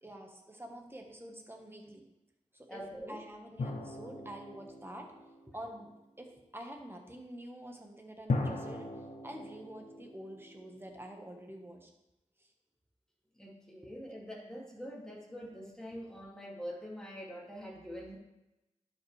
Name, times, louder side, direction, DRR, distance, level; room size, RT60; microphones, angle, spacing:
voice 1, 0.0-2.0 2.5-5.1 5.5-5.9 6.2-11.9 12.4-12.5 13.8-13.9, right 1 dB, 20° right, 2 dB, 1.4 m, -47 dB
voice 2, 2.7-3.2 13.4-18.2, equal, 5° left, -4 dB, 2.4 m, -44 dB
sound 1, 3.6-5.9 8.3-11.2, left 3 dB, 70° left, 1.1 m, -39 dB
11.5 x 5.5 x 3.3 m, 0.96 s
wide cardioid pair, 60°, 12 cm